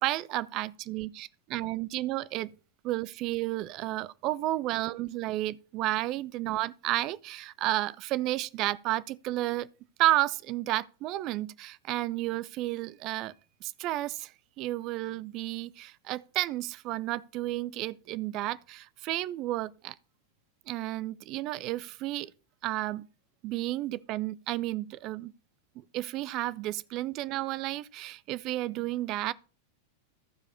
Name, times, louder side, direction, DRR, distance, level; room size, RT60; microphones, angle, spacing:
voice 1, 0.0-2.5 2.8-9.7 10.0-13.3 13.6-14.3 14.6-19.9 20.7-22.3 22.6-23.1 23.4-25.3 25.9-29.3, right 16 dB, 40° right, 0.4 m, -32 dB
14.5 x 4.8 x 4.3 m
figure-of-eight pair, 90°, 0 cm